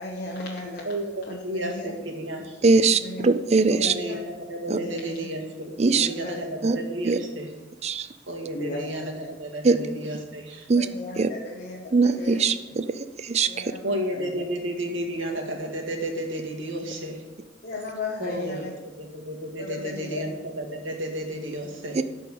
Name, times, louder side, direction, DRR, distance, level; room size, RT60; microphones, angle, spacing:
voice 1, 0.0-0.9 1.3-1.9 3.0-3.3 3.8-4.2 4.7-5.3 6.1-6.6 8.5-9.3 10.7-12.6 13.4-14.4 17.6-18.7 19.6-20.2, left 2 dB, 50° left, -2 dB, 1.1 m, -36 dB
voice 2, 0.9-2.6 3.7-7.5 8.3-10.7 13.8-17.2 18.2-18.7 19.0-22.0, right 1 dB, 70° right, 2 dB, 2.0 m, -32 dB
voice 3, 2.6-3.9 4.7-4.8 5.8-6.1 6.6-6.8 7.0-7.2 7.8-8.1 9.6-9.8 10.7-10.9 11.2-11.3 11.9-13.7 22.0-22.1, right 4 dB, 35° right, 11 dB, 0.4 m, -21 dB
12.5 x 4.6 x 8.2 m, 1.2 s
head